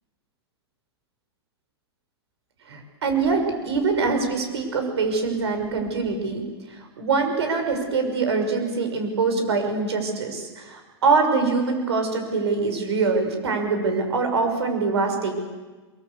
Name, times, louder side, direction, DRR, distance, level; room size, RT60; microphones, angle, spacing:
voice 1, 2.7-6.4 6.7-15.3, right 4 dB, 75° right, 5 dB, 6.0 m, -24 dB
24.0 x 23.0 x 8.2 m, 1.3 s
hypercardioid pair, 105°, 14 cm